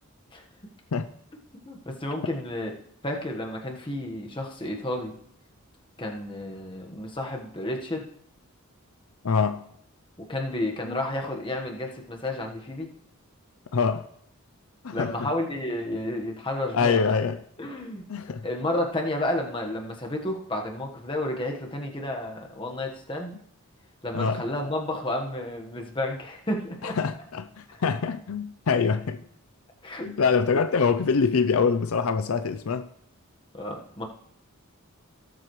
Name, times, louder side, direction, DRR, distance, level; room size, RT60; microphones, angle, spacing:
voice 1, 1.6-2.7 3.0-5.1 6.0-8.0 10.2-12.9 14.9-17.0 17.6-18.0 18.4-23.3 24.0-27.0 29.8-30.1 33.5-34.0, left 1 dB, 20° left, 1.3 m, -31 dB
voice 2, 9.2-9.6 13.7-14.0 14.8-15.3 16.7-17.4 18.1-18.4 24.1-24.4 26.8-29.2 30.1-32.9, left 5 dB, 70° left, 0.5 m, -24 dB
17.5 x 7.7 x 3.1 m
head